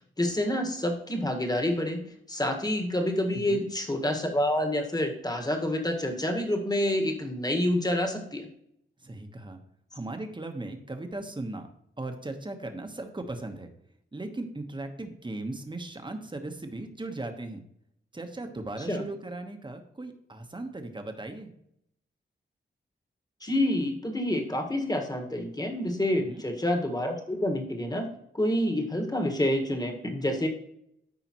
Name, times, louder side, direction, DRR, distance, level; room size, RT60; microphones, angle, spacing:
voice 1, 0.2-8.5 18.8-19.0 23.4-28.1 28.3-30.5, left 1 dB, 20° left, 3 dB, 1.6 m, -28 dB
voice 2, 3.3-3.6 9.0-9.6 9.9-11.7 12.0-13.7 14.1-17.6 18.1-21.5 26.2-26.4, right 2 dB, 25° right, 5 dB, 1.2 m, -37 dB
13.5 x 5.0 x 3.1 m, 0.73 s
wide cardioid pair, 80°, 21 cm